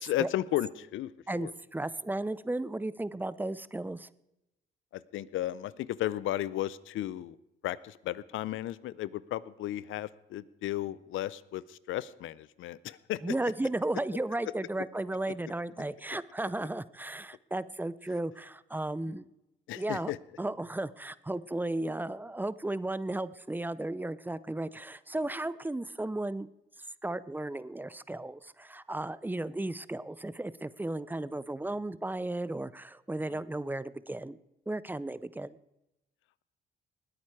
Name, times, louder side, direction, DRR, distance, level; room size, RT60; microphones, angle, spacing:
voice 1, 0.0-1.5 4.9-7.4 7.6-13.5 19.1-19.2 19.7-20.2 33.3-33.4, left 14 dB, 80° left, 19 dB, 0.6 m, -34 dB
voice 2, 1.3-4.1 13.2-19.2 19.8-20.1 20.4-26.5 27.0-34.4 34.7-35.6, right 2 dB, 10° right, 18 dB, 0.5 m, -34 dB
19.5 x 8.7 x 4.8 m, 0.91 s
cardioid pair, 90°, 20 cm